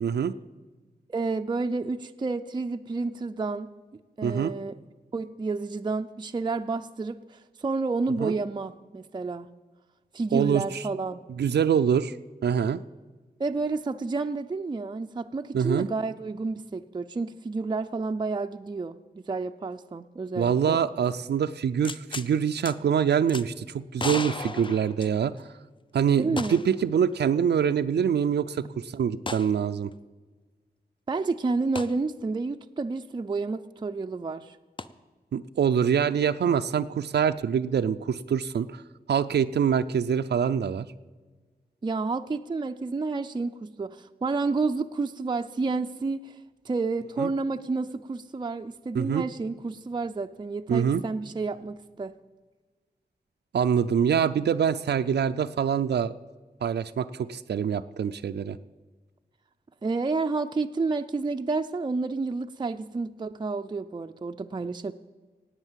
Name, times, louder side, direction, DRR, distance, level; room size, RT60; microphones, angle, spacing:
voice 1, 0.0-0.3 4.2-4.5 8.2-8.3 10.3-10.8 11.4-12.1 12.4-12.8 15.5-15.9 20.3-25.3 25.9-29.9 35.3-38.8 39.1-40.9 47.2-47.3 48.9-49.2 50.7-51.0 53.5-56.1 56.6-58.6, right 7 dB, 90° right, 9 dB, 0.5 m, -25 dB
voice 2, 1.1-3.7 4.2-4.7 5.1-9.5 10.1-11.2 13.4-20.8 26.2-26.6 31.1-34.6 41.8-46.4 46.6-52.1 59.8-64.9, right 3 dB, 25° right, 6 dB, 0.4 m, -30 dB
sound 1, 21.8-22.3 22.7-22.8 23.3-23.5 24.0-25.5 26.4-26.8 27.1-27.2 29.3-29.5 31.8-31.9 34.8-34.9, left 3 dB, 30° left, 0.6 m, -35 dB
18.0 x 8.1 x 7.4 m, 1.3 s
wide cardioid pair, 120°, 17 cm